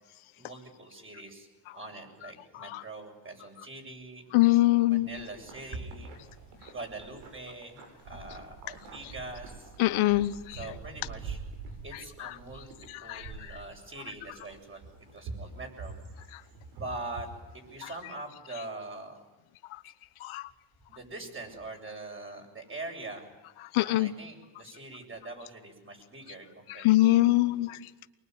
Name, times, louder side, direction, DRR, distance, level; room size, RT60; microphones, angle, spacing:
voice 1, 0.4-1.5 1.7-4.2 4.8-6.2 6.7-7.8 8.0-9.7 10.5-11.4 11.8-12.7 13.0-14.8 15.1-16.0 16.7-17.3 17.5-19.2 20.9-23.2 23.8-27.8, right 2 dB, 25° right, 3 dB, 7.4 m, -43 dB
voice 2, 4.3-5.1 9.8-10.6 12.2-12.3 12.9-13.3 20.2-20.4 23.7-24.1 26.8-27.8, left 17 dB, 75° left, 13 dB, 1.2 m, -23 dB
sound 1, 5.1-18.1, right 4 dB, 85° right, 6.9 m, -45 dB
25.0 x 22.0 x 9.6 m, 1.1 s
cardioid pair, 120°, 50 cm